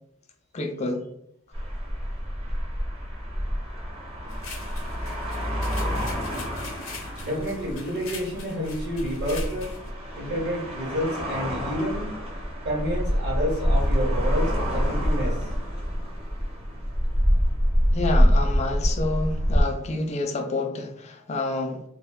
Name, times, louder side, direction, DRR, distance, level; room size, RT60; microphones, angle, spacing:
voice 1, 0.5-1.1 17.9-21.8, left 2 dB, 30° left, 0.3 m, -28 dB
sound 1, 1.5-19.6, equal, 25° right, 0.6 m, -26 dB
sound 2, 4.3-9.9, left 4 dB, 65° left, 0.6 m, -43 dB
voice 2, 7.2-9.8 10.1-12.1 12.6-15.4, equal, 50° right, 1.0 m, -29 dB
2.4 x 2.2 x 3.6 m
head